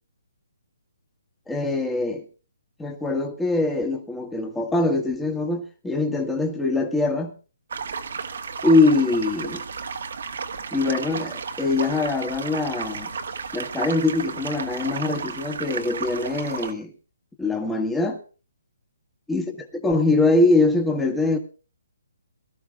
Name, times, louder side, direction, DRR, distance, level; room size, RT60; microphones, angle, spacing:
voice 1, 1.5-2.2 2.8-7.3 8.6-9.6 10.7-13.1 13.5-16.9 17.4-18.2 19.3-21.4, left 2 dB, 5° left, 1.6 m, -23 dB
sound 1, 7.7-16.7, right 5 dB, 65° right, 1.6 m, -33 dB
22.5 x 13.5 x 2.4 m
hypercardioid pair, 155°, 0 cm